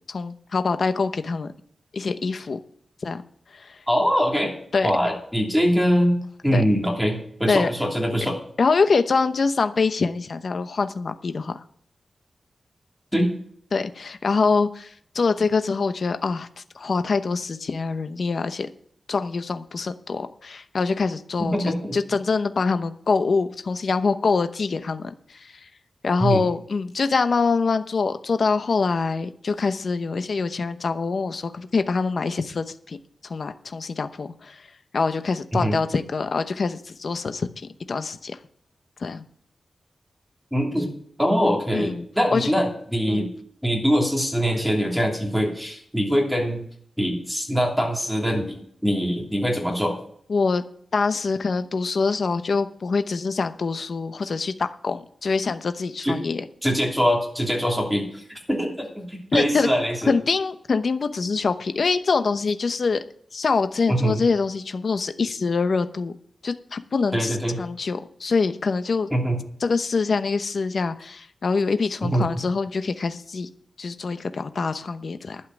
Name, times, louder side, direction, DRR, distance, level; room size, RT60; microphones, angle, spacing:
voice 1, 0.1-1.5 1.9-2.6 3.0-3.2 3.5-3.8 4.7-4.9 6.5-6.6 7.5-7.7 8.6-11.6 13.7-16.5 16.7-18.7 19.1-25.7 26.0-33.0 33.2-34.7 34.9-37.5 37.9-38.4 39.0-39.2 41.7-42.0 42.3-42.5 43.1-43.3 50.3-50.6 50.9-56.4 59.3-59.7 60.1-63.0 63.3-66.1 66.4-69.1 69.6-73.5 73.8-75.4, left 4 dB, 60° left, 9 dB, 0.9 m, -24 dB
voice 2, 3.9-4.5 4.8-8.4 13.1-13.3 21.4-22.0 26.2-26.5 35.5-35.8 40.5-40.9 41.2-43.3 43.6-46.6 47.0-50.0 56.0-56.2 56.6-58.2 58.5-60.1 63.9-64.2 67.1-67.6 69.1-69.4 72.0-72.2, equal, ahead, 0 dB, 3.1 m, -23 dB
12.0 x 5.7 x 9.1 m, 0.63 s
wide cardioid pair, 120°, 0 cm